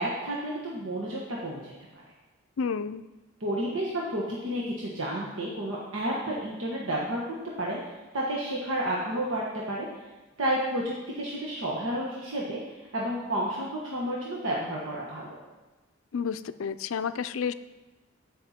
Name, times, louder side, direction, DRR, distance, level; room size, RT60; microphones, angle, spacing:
voice 1, 0.0-1.7 3.4-7.2 7.6-7.8 8.1-9.9 10.4-12.6 12.9-15.3, right 1 dB, 80° right, -4 dB, 1.4 m, -31 dB
voice 2, 2.6-3.1 16.1-17.5, left 6 dB, 85° left, 13 dB, 0.4 m, -30 dB
14.0 x 5.7 x 4.3 m, 1.2 s
head